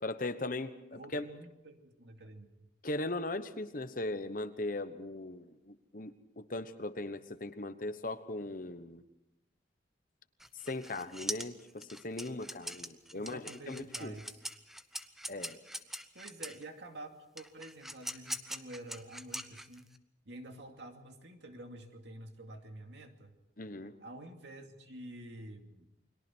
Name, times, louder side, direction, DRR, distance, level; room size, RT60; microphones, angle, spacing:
voice 1, 0.0-1.2 2.8-9.0 10.6-14.1 15.3-15.6 23.6-23.9, left 2 dB, 45° left, 10 dB, 1.1 m, -39 dB
voice 2, 0.9-2.7 13.1-14.4 16.1-19.9 20.2-23.4 24.0-25.9, right 1 dB, 60° right, 4 dB, 2.5 m, -49 dB
sound 1, 10.4-16.6 17.4-20.0, equal, ahead, 0.7 m, -42 dB
29.5 x 22.0 x 4.6 m, 0.91 s
head